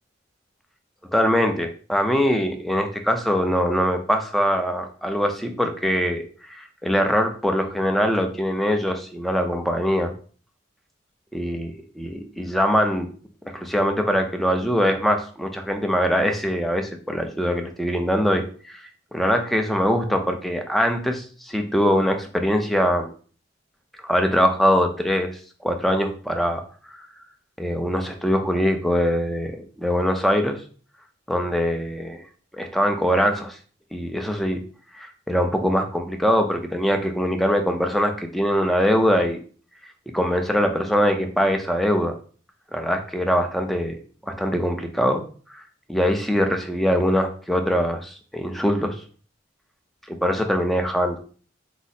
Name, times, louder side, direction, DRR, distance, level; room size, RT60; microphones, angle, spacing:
voice 1, 1.1-6.2 6.5-10.1 11.3-13.1 13.5-18.8 19.1-23.1 24.0-25.3 25.6-26.6 27.6-30.6 31.3-32.2 32.5-33.6 33.9-34.6 35.0-39.4 40.1-42.1 42.7-44.0 44.3-45.2 45.9-49.0 50.1-51.2, equal, ahead, 4 dB, 0.5 m, -22 dB
4.7 x 2.0 x 4.2 m, 0.41 s
head